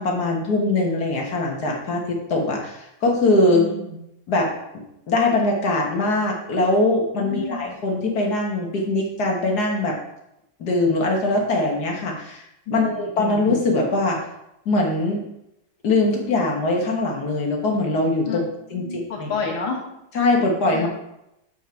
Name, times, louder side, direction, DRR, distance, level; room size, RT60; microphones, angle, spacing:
voice 1, 0.0-3.6 4.3-4.5 5.1-10.0 10.6-12.4 12.7-14.2 14.6-15.2 15.8-18.4 18.7-18.8 19.2-19.3 20.1-20.9, left 2 dB, 55° left, 0 dB, 1.8 m, -21 dB
voice 2, 3.5-4.0 7.1-7.7 12.7-13.4 18.3-18.4 18.7-19.8 20.7-20.9, left 4 dB, 80° left, -1 dB, 2.3 m, -30 dB
7.6 x 4.6 x 4.5 m, 0.84 s
omnidirectional pair, 2.1 m